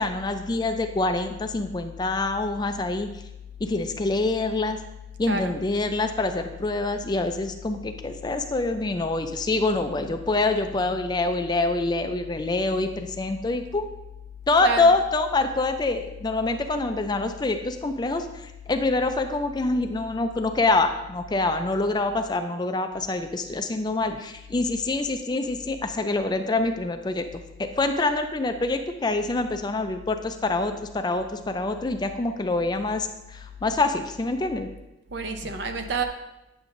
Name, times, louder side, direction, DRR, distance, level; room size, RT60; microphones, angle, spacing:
voice 1, 0.0-3.1 3.6-4.8 5.2-13.9 14.5-27.3 27.6-34.7, left 2 dB, 20° left, 7 dB, 0.4 m, -25 dB
voice 2, 5.3-5.6 14.6-14.9 35.1-36.0, right 4 dB, 60° right, 6 dB, 0.7 m, -29 dB
9.0 x 7.0 x 2.5 m, 0.95 s
head